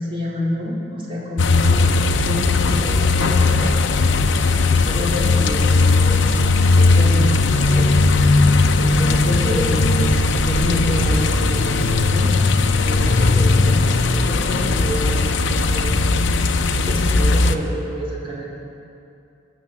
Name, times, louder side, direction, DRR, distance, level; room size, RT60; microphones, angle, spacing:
voice 1, 0.0-3.9 4.4-8.0 8.6-10.2 10.5-16.4 16.8-18.6, left 1 dB, 30° right, -6 dB, 3.6 m, -28 dB
sound 1, 1.4-17.6, left 3 dB, 75° left, 0.7 m, -17 dB
20.5 x 7.4 x 7.2 m, 2.6 s
head